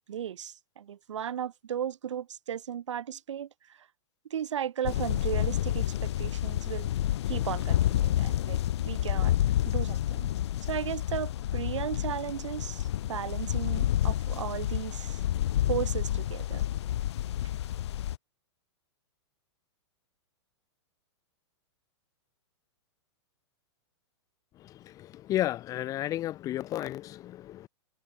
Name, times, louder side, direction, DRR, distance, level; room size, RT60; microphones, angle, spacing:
voice 1, 0.0-3.9 4.3-6.9 7.3-8.6 8.8-9.3 9.7-10.3 10.6-15.2 15.7-16.7, right 9 dB, 85° right, 2.5 m, -35 dB
sound 1, 4.9-18.2, left 12 dB, 70° left, 1.3 m, -29 dB
voice 2, 25.3-27.7, left 14 dB, 25° left, 0.9 m, -32 dB
open air
hypercardioid pair, 150°, 15 cm